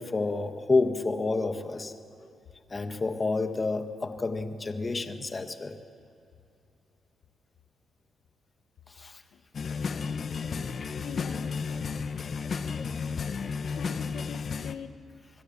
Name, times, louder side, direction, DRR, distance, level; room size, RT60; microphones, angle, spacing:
voice 1, 0.0-1.9 2.7-5.8 8.9-9.2, left 3 dB, 30° left, 7 dB, 1.6 m, -29 dB
sound 1, 9.5-14.7, left 5 dB, 50° left, 1.1 m, -33 dB
voice 2, 11.0-11.7 13.6-14.9, left 8 dB, 80° left, 9 dB, 1.1 m, -43 dB
26.5 x 21.0 x 7.4 m, 2.7 s
cardioid pair, 105°, 0 cm